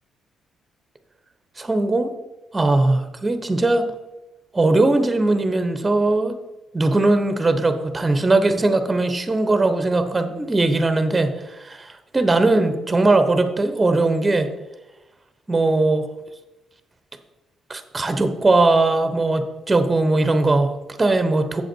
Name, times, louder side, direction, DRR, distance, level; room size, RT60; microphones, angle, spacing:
voice 1, 1.6-2.1 2.5-3.9 4.5-6.4 6.7-14.5 15.5-16.1 17.7-21.6, right 2 dB, 20° right, 9 dB, 1.0 m, -19 dB
7.8 x 7.4 x 4.6 m, 1.0 s
cardioid pair, 90°, 0 cm